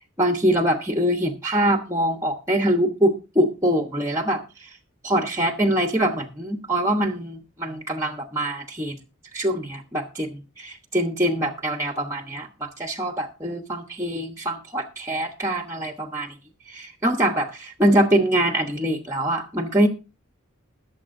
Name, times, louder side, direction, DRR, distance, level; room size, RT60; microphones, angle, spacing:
voice 1, 0.2-4.7 5.0-9.0 9.3-16.3 16.7-19.9, right 1 dB, 15° right, 5 dB, 1.1 m, -24 dB
21.0 x 7.3 x 2.6 m, 0.30 s
head